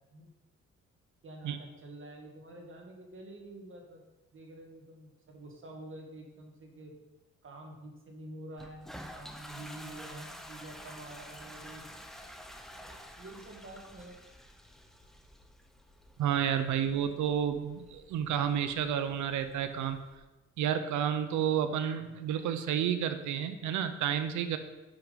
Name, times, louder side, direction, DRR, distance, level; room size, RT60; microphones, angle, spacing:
voice 1, 1.2-4.0 4.3-6.9 7.4-11.8 13.2-14.2, right 1 dB, 45° right, 1 dB, 1.8 m, -48 dB
Toilet flush, 8.6-20.2, equal, ahead, 0.7 m, -50 dB
voice 2, 16.2-20.0 20.6-24.6, right 9 dB, 75° right, 9 dB, 0.7 m, -30 dB
6.0 x 5.8 x 5.1 m, 1.1 s
cardioid pair, 90°, 30 cm